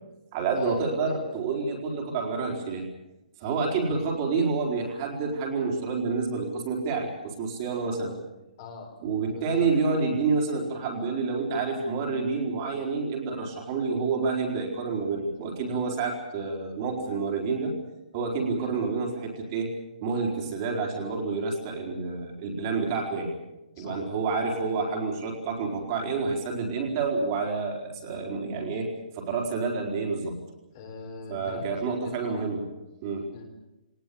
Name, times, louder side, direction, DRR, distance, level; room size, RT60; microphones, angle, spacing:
voice 1, 0.3-2.9 3.4-8.2 9.0-17.8 18.1-19.7 20.0-23.3 23.8-30.4 31.3-32.6 33.0-33.3, right 4 dB, 25° right, 0 dB, 4.3 m, -28 dB
voice 2, 8.6-8.9 9.3-9.7 18.6-18.8 23.7-24.4 24.8-24.9 30.7-32.5 33.3-33.4, left 5 dB, 30° left, 2 dB, 4.2 m, -43 dB
23.0 x 19.5 x 8.6 m, 0.97 s
hypercardioid pair, 170°, 4 cm